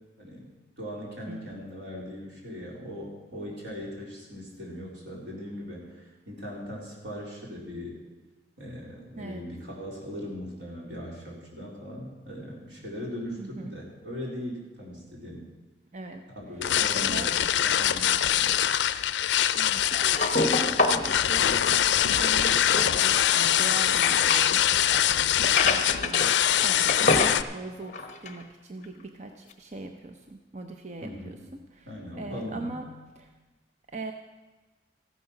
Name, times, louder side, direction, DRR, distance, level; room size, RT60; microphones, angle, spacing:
voice 1, 0.2-0.5 0.8-8.0 8.6-15.5 16.3-18.5 23.8-24.0 31.0-31.4 31.9-32.9, equal, 85° right, -3 dB, 4.0 m, -39 dB
voice 2, 13.4-13.8 15.9-16.2 16.9-17.3 19.6-26.3 26.6-31.4 31.7-31.9 32.1-32.8 33.2-33.3 33.9-34.1, right 2 dB, 40° right, 5 dB, 0.7 m, -41 dB
sound 1, 16.6-27.4, left 11 dB, 80° left, 0.4 m, -23 dB
sound 2, 18.5-18.6 19.8-24.5 25.4-26.6 26.9-27.4 27.8-28.4 28.8-28.9 29.5-29.6, left 3 dB, 40° left, 1.0 m, -28 dB
14.5 x 9.6 x 5.9 m, 1.2 s
head